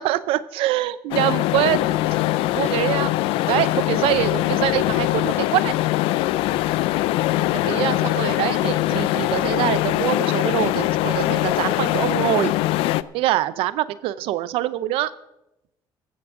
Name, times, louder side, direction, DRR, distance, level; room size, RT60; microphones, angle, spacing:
voice 1, 0.0-2.0 2.5-5.7 7.5-12.5 13.1-15.1, right 14 dB, 85° right, 16 dB, 0.6 m, -24 dB
sound 1, 1.1-13.0, left 16 dB, 90° left, 0.4 m, -22 dB
15.0 x 13.0 x 3.7 m, 0.89 s
cardioid pair, 130°, 9 cm